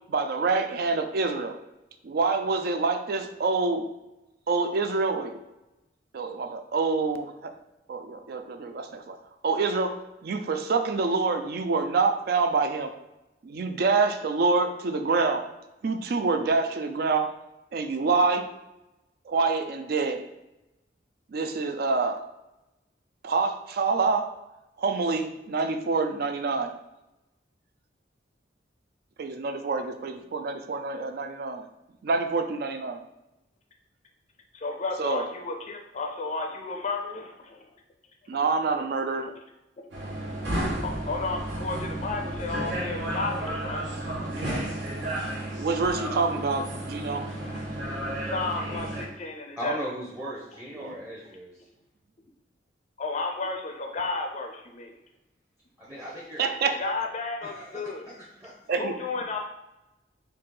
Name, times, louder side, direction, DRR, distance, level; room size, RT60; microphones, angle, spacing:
voice 1, 0.1-1.6 2.0-3.9 4.5-5.4 6.1-7.5 7.9-9.2 9.4-9.9 10.2-12.9 13.4-15.4 15.8-17.3 17.7-18.5 19.3-20.2 21.3-22.2 23.2-24.3 24.8-26.7 29.2-31.7 32.0-33.0 35.0-35.3 38.3-39.3 45.6-47.2 50.8-50.9 56.4-56.8 58.7-59.0, right 4 dB, 60° right, 7 dB, 0.4 m, -26 dB
voice 2, 34.5-37.6 40.8-43.9 44.4-44.8 47.1-47.6 48.2-49.8 53.0-54.9 56.8-58.0 58.7-59.4, left 3 dB, 40° left, 3 dB, 0.4 m, -33 dB
sound 1, 39.9-49.0, right 1 dB, 75° right, 1.3 m, -32 dB
voice 3, 49.6-51.6 55.8-56.4 57.4-58.2 58.4-58.5, right 1 dB, 10° right, -6 dB, 0.7 m, -37 dB
4.1 x 2.7 x 3.8 m, 0.93 s
head